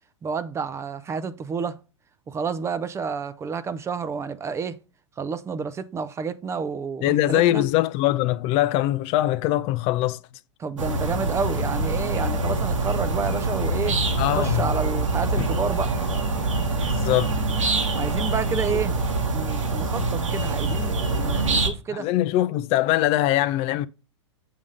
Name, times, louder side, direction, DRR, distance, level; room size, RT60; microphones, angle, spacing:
voice 1, 0.2-1.8 2.3-4.8 5.2-7.7 10.6-14.0 14.3-16.0 17.9-19.0 19.3-22.1, right 5 dB, 15° right, 0.5 m, -30 dB
voice 2, 7.0-10.2 14.2-14.7 15.4-15.5 16.8-17.3 21.9-23.9, left 15 dB, 40° left, 0.5 m, -22 dB
sound 1, 10.8-21.7, right 2 dB, 90° right, 1.6 m, -25 dB
7.4 x 3.5 x 5.3 m
hypercardioid pair, 115°, 16 cm